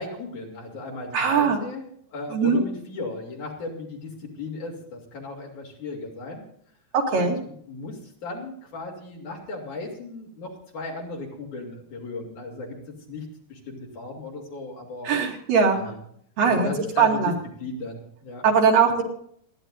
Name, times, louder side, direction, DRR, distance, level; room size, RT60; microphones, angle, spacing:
voice 1, 0.0-6.4 7.1-15.1 15.7-16.0 16.4-17.3 17.6-18.4, left 3 dB, 55° left, -1 dB, 4.3 m, -36 dB
voice 2, 1.1-1.6 2.3-2.6 6.9-7.4 15.1-15.8 16.4-16.7 17.0-17.3 18.4-19.0, right 5 dB, 70° right, 0 dB, 3.9 m, -20 dB
28.5 x 11.0 x 2.6 m, 0.64 s
omnidirectional pair, 4.1 m